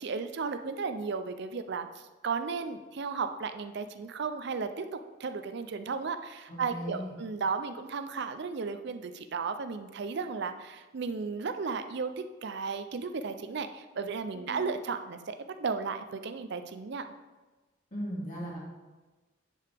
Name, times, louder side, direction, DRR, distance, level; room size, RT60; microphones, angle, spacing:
voice 1, 0.0-1.9 2.2-4.8 5.2-12.1 12.4-17.1, right 5 dB, 55° right, 9 dB, 0.5 m, -34 dB
voice 2, 6.5-7.1 14.3-14.7 17.9-18.6, equal, 40° left, -6 dB, 2.2 m, -38 dB
9.8 x 4.8 x 3.4 m, 1.2 s
head